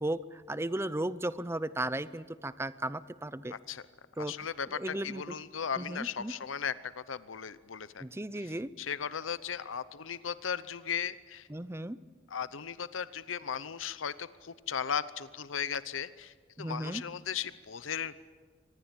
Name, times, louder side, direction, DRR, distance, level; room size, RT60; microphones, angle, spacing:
voice 1, 0.0-3.5 4.2-4.3 4.7-5.4 5.8-6.3 8.0-8.7 11.5-12.0 16.6-17.0, right 1 dB, 15° right, 16 dB, 0.7 m, -35 dB
voice 2, 3.5-3.8 4.2-8.0 8.4-11.5 12.3-18.2, left 7 dB, 85° left, 15 dB, 0.8 m, -37 dB
25.0 x 21.0 x 9.0 m, 1.5 s
head